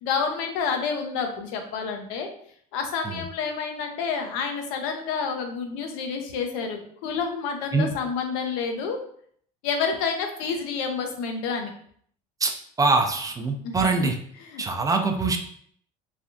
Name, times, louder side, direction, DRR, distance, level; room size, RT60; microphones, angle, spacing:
voice 1, 0.0-2.3 2.7-9.0 9.6-11.7 13.6-14.1 14.4-14.6, left 5 dB, 85° left, 4 dB, 0.6 m, -29 dB
voice 2, 12.8-14.2 14.6-15.4, right 3 dB, 20° right, 4 dB, 0.4 m, -23 dB
3.3 x 2.4 x 2.5 m, 0.62 s
supercardioid pair, 90°, 18 cm